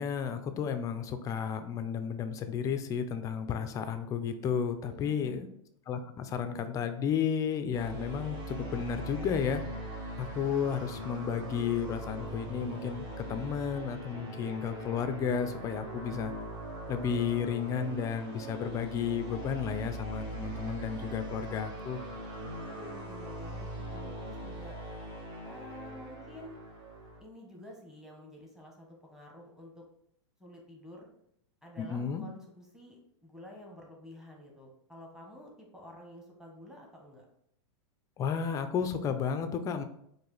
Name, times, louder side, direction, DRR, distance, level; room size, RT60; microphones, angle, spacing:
voice 1, 0.0-5.5 5.9-9.6 10.2-16.3 16.9-22.0 31.8-32.2 38.2-39.8, left 7 dB, 20° left, 9 dB, 0.3 m, -32 dB
voice 2, 4.8-5.5 22.4-24.8 25.4-26.6 27.2-29.8 30.4-31.1 31.6-37.3, left 1 dB, 5° right, -1 dB, 0.9 m, -50 dB
sound 1, 7.7-27.2, right 1 dB, 50° right, 1.5 m, -41 dB
sound 2, 13.9-19.6, right 8 dB, 80° right, 0.8 m, -53 dB
4.7 x 2.5 x 3.8 m, 0.72 s
hypercardioid pair, 135°, 16 cm